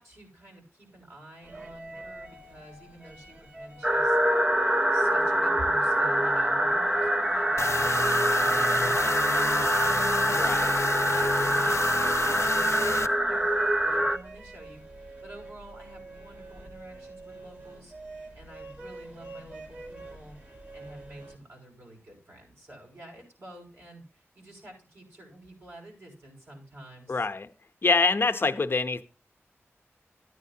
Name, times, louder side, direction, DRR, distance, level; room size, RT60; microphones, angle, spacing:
voice 1, 0.0-4.5 4.9-13.5 13.8-27.3, right 1 dB, 55° right, 5.8 m, -49 dB
sound 1, 1.4-21.4, right 2 dB, 35° right, 3.1 m, -47 dB
sound 2, 3.8-14.2, right 1 dB, 15° right, 0.6 m, -25 dB
sound 3, 7.6-13.1, left 5 dB, 75° left, 0.7 m, -31 dB
voice 2, 10.2-10.7 27.1-27.5 27.8-29.0, left 4 dB, 50° left, 0.8 m, -25 dB
13.0 x 9.3 x 2.8 m
wide cardioid pair, 90°, 5 cm